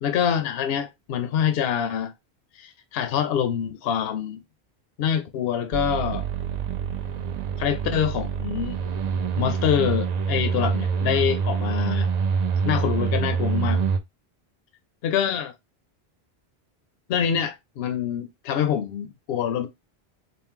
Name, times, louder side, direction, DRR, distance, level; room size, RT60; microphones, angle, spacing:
voice 1, 0.0-2.1 2.6-4.4 5.0-6.3 7.6-8.8 9.4-12.1 12.6-13.8 15.0-15.5 17.1-19.7, left 8 dB, 70° left, 0.8 m, -25 dB
sound 1, 5.7-14.0, right 6 dB, 55° right, 0.5 m, -26 dB
4.3 x 2.1 x 3.5 m
omnidirectional pair, 1.1 m